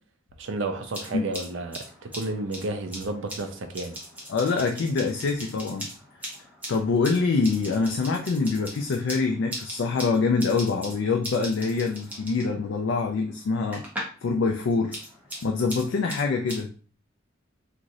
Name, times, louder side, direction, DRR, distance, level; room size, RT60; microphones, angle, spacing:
voice 1, 0.4-1.8 2.1-4.0, right 2 dB, 70° right, 6 dB, 0.5 m, -31 dB
sound 1, 0.8-14.3 14.5-16.6, equal, 10° right, 0.7 m, -40 dB
voice 2, 4.3-5.9 6.7-13.8 14.2-15.0 15.4-16.7, left 4 dB, 70° left, 2 dB, 0.4 m, -25 dB
3.0 x 2.5 x 2.6 m, 0.39 s
head